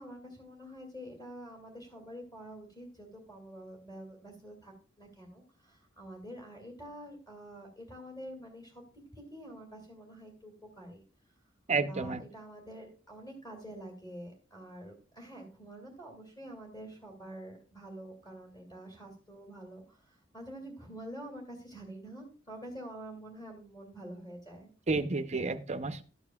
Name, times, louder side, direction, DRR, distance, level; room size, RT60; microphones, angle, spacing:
voice 1, 0.0-8.8 9.1-11.0 11.8-24.7, right 1 dB, 20° left, 0 dB, 2.2 m, -47 dB
voice 2, 11.7-12.2 24.9-26.0, right 3 dB, 35° right, 9 dB, 0.6 m, -31 dB
12.5 x 8.7 x 2.3 m, 0.36 s
head